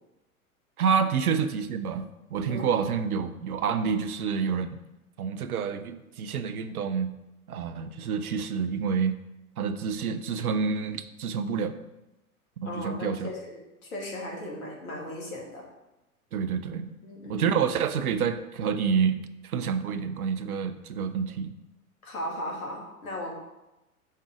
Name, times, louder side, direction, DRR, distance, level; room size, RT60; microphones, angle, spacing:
voice 1, 0.8-4.8 5.2-7.2 7.5-9.2 9.6-11.7 12.6-13.3 16.3-17.0 17.3-21.5, right 6 dB, 75° right, 10 dB, 0.6 m, -28 dB
voice 2, 12.7-15.6 17.0-17.4 22.0-23.3, left 1 dB, 65° left, -1 dB, 1.9 m, -37 dB
5.4 x 3.6 x 4.8 m, 0.97 s
figure-of-eight pair, 95°, 45 cm